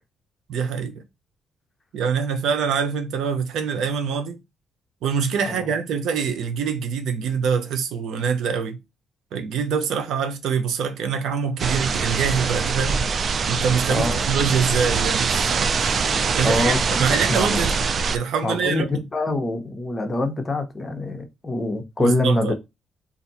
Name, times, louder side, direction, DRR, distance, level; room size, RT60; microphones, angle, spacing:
voice 1, 0.5-1.0 1.9-4.4 5.0-8.8 9.3-13.0 13.5-16.1 16.4-17.7 18.1-19.1 22.0-22.5, right 6 dB, 80° right, 0.7 m, -25 dB
sound 1, 11.6-18.2, right 5 dB, 45° right, 0.4 m, -23 dB
voice 2, 16.4-17.6 18.4-22.5, left 1 dB, 25° left, 0.9 m, -25 dB
2.7 x 2.4 x 4.0 m
cardioid pair, 90°, 0 cm